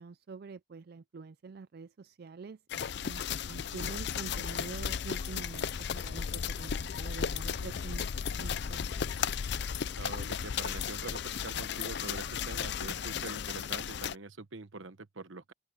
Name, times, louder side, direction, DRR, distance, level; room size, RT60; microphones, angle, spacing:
voice 1, 0.0-8.1 8.4-9.1, right 4 dB, 50° right, 0.4 m, -46 dB
sound 1, 2.7-14.1, left 7 dB, 55° left, 0.4 m, -35 dB
sound 2, 3.9-12.1, left 1 dB, 30° left, 7.1 m, -61 dB
voice 2, 10.0-15.5, right 3 dB, 70° right, 1.1 m, -44 dB
open air
head